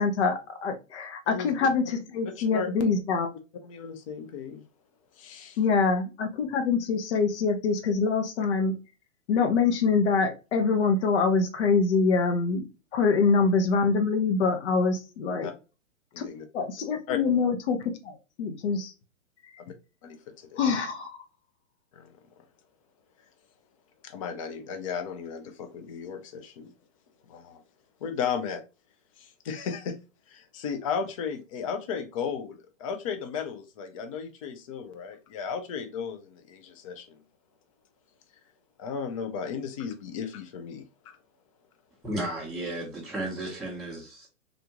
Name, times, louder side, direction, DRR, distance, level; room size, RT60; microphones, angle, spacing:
voice 1, 0.0-3.3 5.6-8.7 9.3-12.7 12.9-15.5 16.2-16.3 16.5-17.8 18.0-18.9 20.6-21.2, left 4 dB, 55° left, 0.8 m, -25 dB
voice 2, 2.3-2.7 3.6-4.6 5.2-5.6 15.4-15.5 16.1-16.4 17.1-17.2 19.7-19.8 20.0-20.6 21.9-22.1 24.0-26.7 27.3-27.6 28.0-28.6 29.2-30.0 30.3-37.2 38.8-41.2, left 6 dB, 25° left, 0.4 m, -35 dB
voice 3, 42.0-44.3, right 1 dB, ahead, 0.8 m, -34 dB
3.6 x 2.4 x 2.8 m
hypercardioid pair, 125°, 40 cm